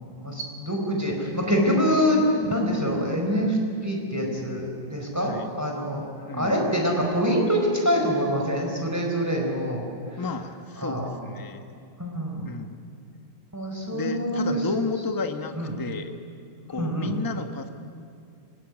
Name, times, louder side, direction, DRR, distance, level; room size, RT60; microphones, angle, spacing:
voice 1, 0.2-9.9 10.8-11.0 12.0-12.5 13.5-14.6 15.5-15.7 16.7-17.1, equal, 5° right, 0 dB, 4.4 m, -25 dB
voice 2, 6.2-6.6 10.2-11.7 12.4-12.8 13.9-16.2 16.7-17.7, left 3 dB, 15° left, 6 dB, 0.9 m, -32 dB
24.5 x 18.0 x 9.9 m, 2.3 s
omnidirectional pair, 2.3 m